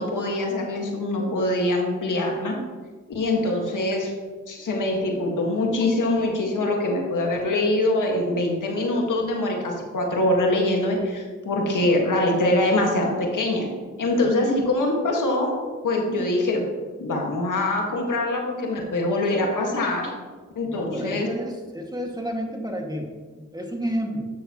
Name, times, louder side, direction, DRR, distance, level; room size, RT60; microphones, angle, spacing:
voice 1, 0.0-2.6 3.1-4.1 4.5-13.7 14.0-15.5 15.8-16.6 17.0-20.1 20.6-21.3, left 1 dB, 80° left, 0 dB, 1.9 m, -23 dB
voice 2, 20.7-24.3, equal, 15° right, 1 dB, 2.1 m, -31 dB
12.5 x 6.6 x 3.1 m, 1.4 s
cardioid pair, 40°, 31 cm